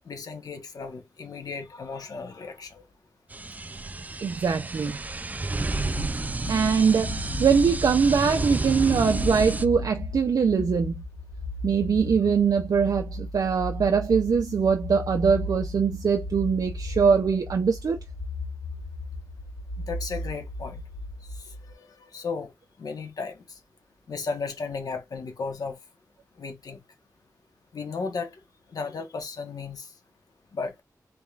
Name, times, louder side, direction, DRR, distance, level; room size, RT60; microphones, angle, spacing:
voice 1, 0.0-2.8 19.8-20.8 21.7-22.5 22.8-23.4 24.1-25.8 26.4-26.8 27.7-28.3 28.7-29.9 30.5-30.7, left 4 dB, 75° left, 1.2 m, -34 dB
sound 1, 3.3-9.6, right 2 dB, 25° right, 0.4 m, -31 dB
voice 2, 4.2-5.0 6.5-10.9 11.6-18.0, right 6 dB, 75° right, 0.6 m, -22 dB
sound 2, 5.8-21.7, left 1 dB, 15° left, 1.1 m, -36 dB
4.1 x 3.6 x 2.4 m
wide cardioid pair, 80°, 6 cm